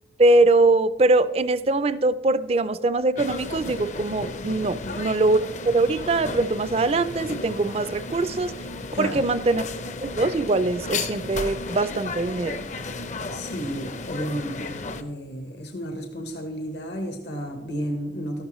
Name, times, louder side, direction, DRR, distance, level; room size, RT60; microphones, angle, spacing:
voice 1, 0.2-5.4 5.7-8.5 9.0-9.7 10.0-12.6, right 2 dB, 35° right, 15 dB, 0.4 m, -22 dB
sound 1, 3.2-15.0, left 3 dB, 45° left, 0.5 m, -34 dB
voice 2, 8.9-9.2 13.3-18.5, equal, 75° left, 5 dB, 1.1 m, -32 dB
14.5 x 11.5 x 3.1 m, 1.2 s
head